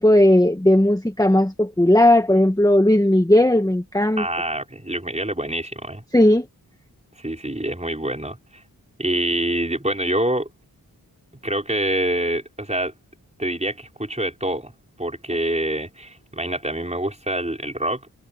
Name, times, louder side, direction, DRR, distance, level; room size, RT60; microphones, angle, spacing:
voice 1, 0.0-4.2 6.1-6.5, left 1 dB, 10° left, 1.5 m, -16 dB
voice 2, 4.2-6.0 7.2-8.6 9.0-10.5 11.4-12.9 13.4-14.7 15.0-18.0, right 1 dB, 20° right, 5.4 m, -26 dB
wide cardioid pair, 55°, 37 cm